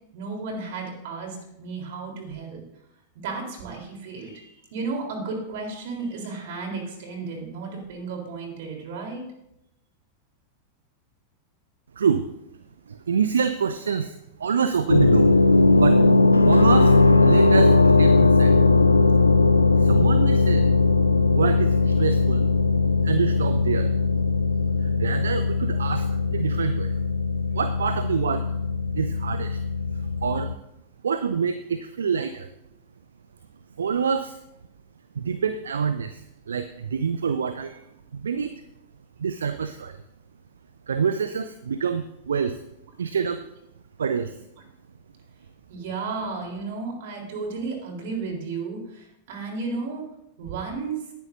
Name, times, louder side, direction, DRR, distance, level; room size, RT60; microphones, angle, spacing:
voice 1, 0.1-2.6 3.2-9.3 45.7-50.0 50.4-51.0, right 4 dB, 55° right, 1 dB, 3.6 m, -33 dB
voice 2, 12.0-12.3 12.9-15.4 15.7-16.0 16.4-17.0 17.2-18.5 19.8-20.7 21.3-22.5 23.0-23.9 24.8-27.0 27.5-28.4 29.0-29.6 29.9-30.5 31.0-32.5 33.8-34.4 35.2-37.8 38.1-38.6 39.2-40.0 40.9-42.6 43.0-43.4 44.0-44.3, right 6 dB, 70° right, 10 dB, 0.5 m, -26 dB
sound 1, 14.9-30.5, left 3 dB, 80° left, 0.4 m, -19 dB
18.5 x 10.0 x 2.6 m, 0.83 s
figure-of-eight pair, 90°, 0 cm